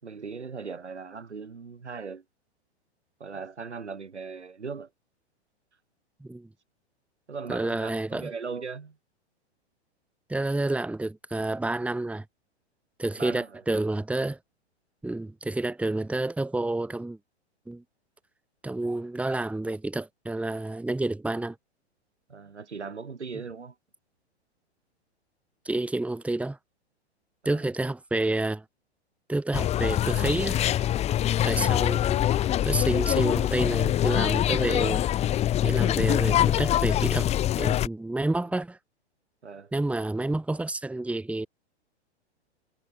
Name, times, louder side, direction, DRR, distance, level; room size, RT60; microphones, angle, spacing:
voice 1, 0.0-2.2 3.2-4.9 7.3-9.0 13.2-13.6 22.3-23.7 27.4-27.7 31.5-31.8 39.4-39.7, right 5 dB, 80° right, 7.2 m, -38 dB
voice 2, 7.5-8.3 10.3-12.2 13.0-14.4 15.0-17.2 17.7-17.8 18.6-21.6 25.7-26.6 27.4-28.6 29.3-30.6 31.4-32.2 32.6-35.0 35.6-37.3 37.6-38.8 39.7-41.5, right 2 dB, 5° right, 2.5 m, -29 dB
sound 1, 29.5-37.9, left 12 dB, 20° left, 0.9 m, -24 dB
figure-of-eight pair, 110°, 34 cm